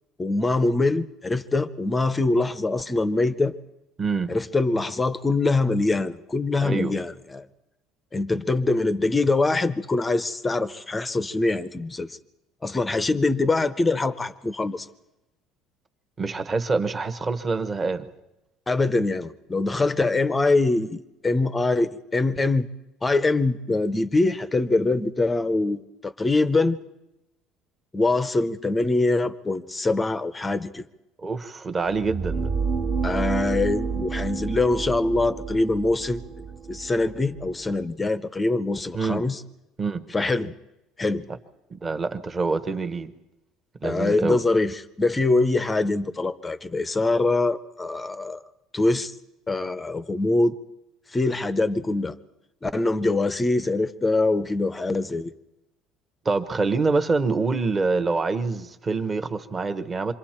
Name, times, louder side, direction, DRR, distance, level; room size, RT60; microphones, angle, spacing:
voice 1, 0.2-3.5 4.3-7.5 8.1-12.2 12.6-14.9 18.7-22.7 23.0-26.8 27.9-30.9 33.0-36.2 36.7-39.4 40.1-40.5 41.0-41.3 43.8-48.4 48.7-49.1 49.5-50.6 51.1-52.2 52.6-55.3, left 2 dB, 10° left, 12 dB, 0.7 m, -23 dB
voice 2, 4.0-4.4 6.6-7.0 16.2-18.1 31.2-32.5 38.9-39.2 39.8-40.0 41.7-43.1 43.8-44.4 56.2-60.1, right 4 dB, 20° right, 10 dB, 1.0 m, -26 dB
sound 1, 31.9-37.8, right 5 dB, 40° right, 1.5 m, -30 dB
27.0 x 24.0 x 4.4 m, 0.95 s
cardioid pair, 170°, 0 cm